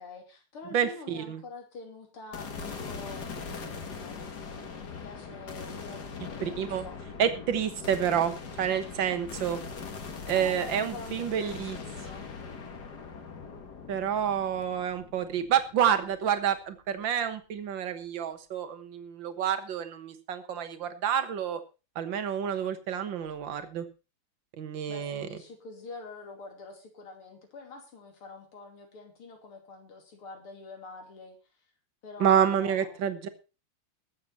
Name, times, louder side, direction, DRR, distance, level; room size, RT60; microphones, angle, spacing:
voice 1, 0.0-4.2 4.8-7.0 7.8-8.1 10.0-12.4 24.9-31.4 32.0-33.1, left 3 dB, 75° left, 3 dB, 3.7 m, -46 dB
voice 2, 0.7-1.4 6.4-6.9 7.2-9.6 10.3-11.8 13.9-21.6 22.0-23.9 24.6-25.3 32.2-33.3, right 9 dB, 60° right, 9 dB, 2.0 m, -28 dB
sound 1, 2.3-16.6, left 5 dB, 50° left, 2.2 m, -41 dB
21.0 x 7.5 x 4.2 m, 0.32 s
omnidirectional pair, 2.4 m